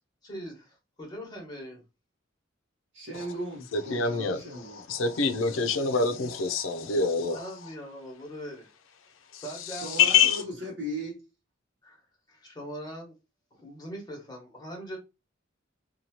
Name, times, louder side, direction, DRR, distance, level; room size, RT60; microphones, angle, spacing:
voice 1, 0.2-1.8 5.2-6.4 7.3-8.7 9.3-10.3 11.8-12.0 12.3-13.1 13.5-15.0, equal, 20° left, 1.1 m, -42 dB
voice 2, 2.9-4.9 9.7-11.2, equal, 65° right, 0.8 m, -37 dB
voice 3, 3.7-4.4 4.8-7.4 9.3-9.4 9.7-10.4, left 5 dB, 85° left, 0.5 m, -25 dB
2.8 x 2.3 x 2.9 m
head